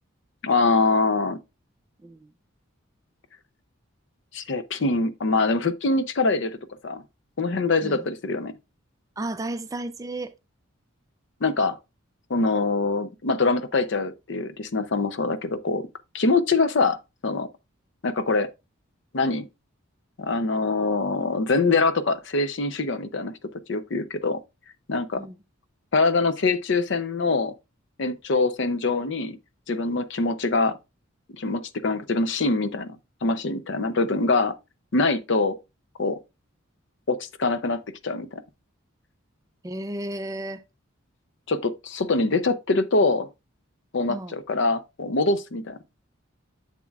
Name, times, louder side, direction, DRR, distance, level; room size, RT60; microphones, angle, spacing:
voice 1, 0.4-1.4 4.3-6.6 6.8-7.0 7.4-8.5 11.4-11.8 12.3-15.9 16.1-17.5 18.0-18.5 19.1-19.5 20.2-23.4 23.7-24.4 24.9-25.2 25.9-27.5 28.0-29.4 29.7-30.8 31.4-34.6 34.9-35.6 36.0-36.2 37.1-38.4 41.5-43.3 43.9-45.8, left 3 dB, 60° left, 0.6 m, -24 dB
voice 2, 9.2-10.3 25.2-25.4 39.6-40.6 44.1-44.4, right 1 dB, 15° right, 0.4 m, -33 dB
7.5 x 7.1 x 2.4 m
head